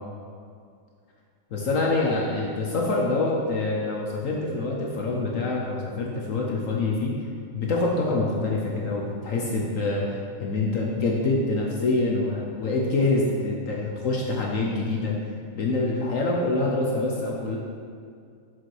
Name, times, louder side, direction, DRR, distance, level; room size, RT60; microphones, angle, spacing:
voice 1, 1.5-7.1 7.5-15.1 15.5-17.6, left 2 dB, 60° left, -2 dB, 0.8 m, -25 dB
6.5 x 6.3 x 4.7 m, 2.2 s
omnidirectional pair, 2.4 m